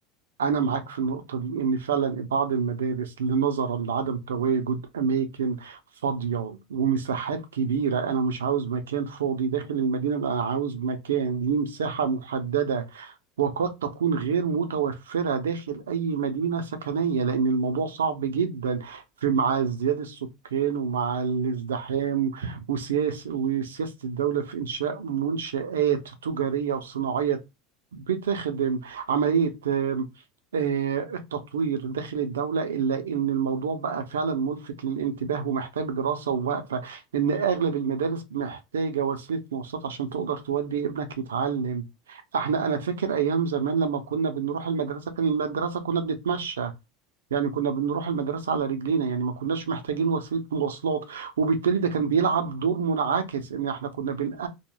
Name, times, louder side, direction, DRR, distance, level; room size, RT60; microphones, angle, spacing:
voice 1, 0.4-27.4 27.9-30.0 30.5-46.7 47.3-54.5, right 6 dB, 85° right, 0.5 m, -27 dB
2.3 x 2.1 x 3.1 m
hypercardioid pair, 90°, 0 cm